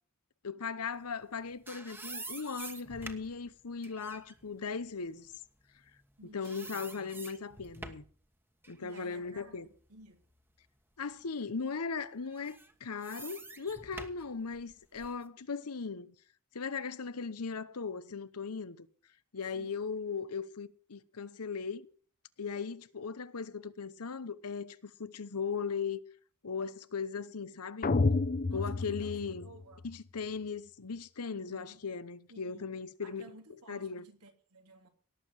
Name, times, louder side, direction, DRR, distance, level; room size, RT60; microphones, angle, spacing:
voice 1, 0.4-5.3 6.2-8.0 8.7-9.7 11.0-16.1 16.5-18.9 19.3-21.9 22.4-26.0 26.4-27.9 28.5-29.5 29.8-33.3 33.7-34.0, left 5 dB, 85° left, 0.9 m, -38 dB
sound 1, 1.2-6.1 6.4-8.2 8.6-10.6 11.1-11.2 12.2-15.2, right 2 dB, 10° right, 1.3 m, -48 dB
voice 2, 6.2-6.8 8.8-10.2 19.5-19.8 28.5-29.1 29.4-29.8 31.3-31.8 32.3-32.7 33.0-34.9, right 2 dB, 85° right, 3.2 m, -55 dB
sound 2, 27.8-30.0, left 3 dB, 40° left, 0.6 m, -30 dB
18.0 x 7.5 x 6.5 m
head